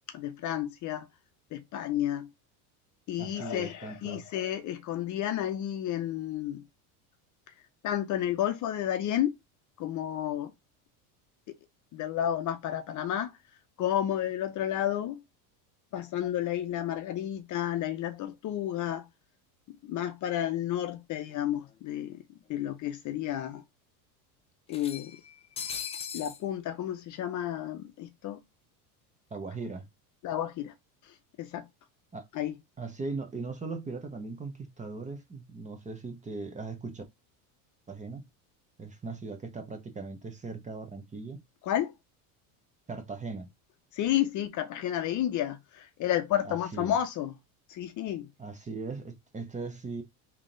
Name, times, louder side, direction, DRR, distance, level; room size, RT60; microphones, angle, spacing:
voice 1, 0.1-1.1 1.5-2.3 3.1-6.6 7.8-9.3 9.8-10.5 11.5-11.6 11.9-13.3 13.8-15.2 15.9-19.1 19.8-22.2 22.5-23.6 24.7-25.2 26.1-28.4 30.2-30.7 31.1-31.7 32.3-32.5 41.6-41.9 43.9-47.4 47.7-48.3, left 11 dB, 40° left, 0.7 m, -31 dB
voice 2, 3.2-4.2 29.3-29.9 32.1-32.2 32.8-37.0 37.9-38.3 38.8-41.4 42.9-43.5 46.4-47.0 48.4-50.0, right 3 dB, 15° right, 0.8 m, -39 dB
sound 1, 21.3-21.4 21.7-21.8 22.8-22.9 23.3-23.4 24.7-26.4, left 7 dB, 15° left, 0.3 m, -39 dB
3.5 x 2.9 x 3.7 m
supercardioid pair, 115°, 45 cm